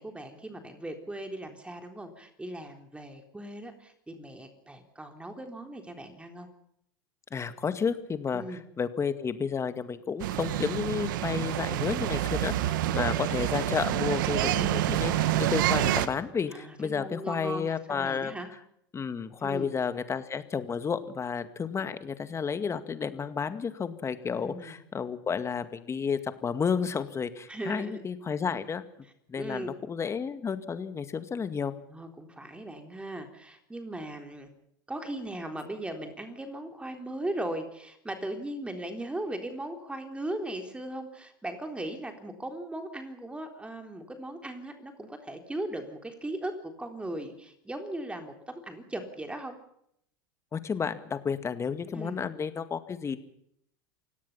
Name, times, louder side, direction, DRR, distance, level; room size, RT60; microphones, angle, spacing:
voice 1, 0.0-6.5 8.3-8.6 16.5-18.5 19.4-19.8 24.4-24.8 27.5-28.0 29.4-29.7 31.9-34.5 34.9-49.6 51.9-52.2, right 1 dB, 10° right, 5 dB, 3.8 m, -38 dB
voice 2, 7.3-8.4 8.8-18.3 18.9-28.9 29.3-31.7 50.5-53.2, left 6 dB, 25° left, 11 dB, 2.1 m, -31 dB
sound 1, 10.2-16.1, right 13 dB, 70° right, 1.6 m, -28 dB
29.0 x 17.5 x 5.8 m, 0.72 s
hypercardioid pair, 85°, 11 cm